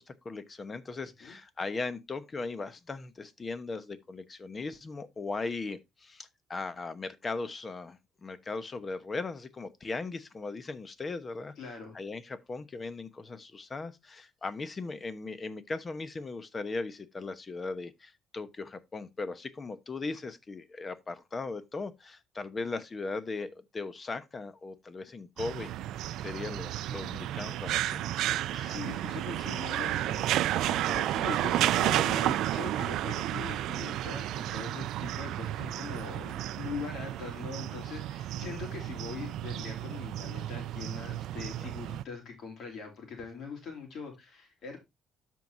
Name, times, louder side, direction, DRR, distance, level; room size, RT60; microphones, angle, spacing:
voice 1, 0.0-11.5 11.9-25.7 26.2-28.0 28.3-28.4, left 3 dB, 30° left, 0.9 m, -38 dB
voice 2, 11.6-12.0 28.5-44.8, left 5 dB, 60° left, 3.1 m, -42 dB
sound 1, 25.4-42.0, right 13 dB, 80° right, 0.4 m, -32 dB
13.0 x 4.7 x 2.6 m
cardioid pair, 115°, 0 cm